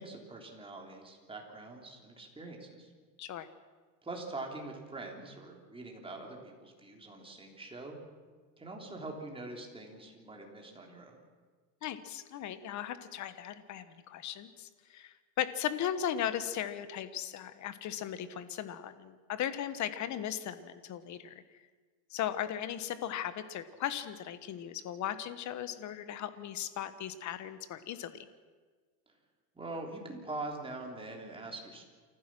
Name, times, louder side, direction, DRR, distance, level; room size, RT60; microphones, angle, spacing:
voice 1, 0.0-2.9 4.0-8.0 8.6-11.2 29.1-29.2 29.5-31.8, right 2 dB, 10° right, 1 dB, 3.5 m, -43 dB
voice 2, 11.8-21.4 22.1-28.3, left 10 dB, 35° left, 12 dB, 1.4 m, -37 dB
28.0 x 15.0 x 6.2 m, 1.5 s
supercardioid pair, 125°, 48 cm